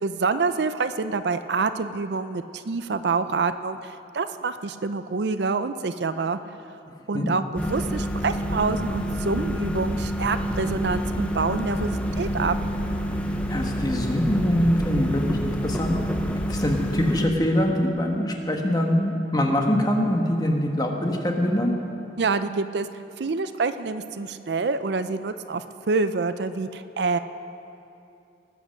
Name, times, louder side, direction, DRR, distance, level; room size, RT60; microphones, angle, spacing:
voice 1, 0.0-6.4 7.1-12.6 22.2-22.9 23.2-27.2, right 4 dB, 70° right, 11 dB, 0.5 m, -27 dB
sound 1, 7.6-17.3, equal, 5° left, 0.7 m, -28 dB
voice 2, 13.5-15.4 15.6-16.0 16.5-21.7, left 1 dB, 20° left, 2 dB, 1.3 m, -23 dB
19.0 x 7.9 x 6.4 m, 2.7 s
head